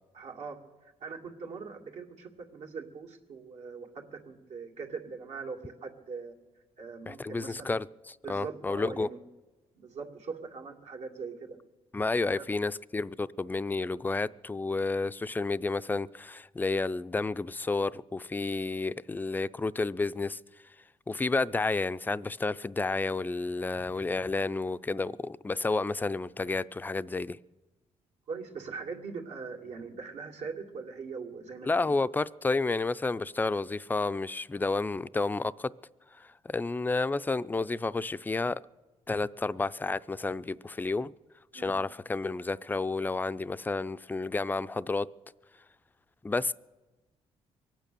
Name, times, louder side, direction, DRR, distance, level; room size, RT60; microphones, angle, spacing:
voice 1, 0.1-0.6 0.8-6.3 6.8-7.7 8.2-9.2 9.7-11.6 12.3-12.4 28.3-31.9 41.5-41.7, right 5 dB, 70° right, 2.3 m, -41 dB
voice 2, 7.1-9.1 11.9-20.4 21.1-27.4 31.6-35.7 36.2-38.6 39.1-41.1 41.5-45.1 46.2-46.5, left 3 dB, 15° left, 0.4 m, -31 dB
23.0 x 9.1 x 6.8 m
cardioid pair, 85°, 12 cm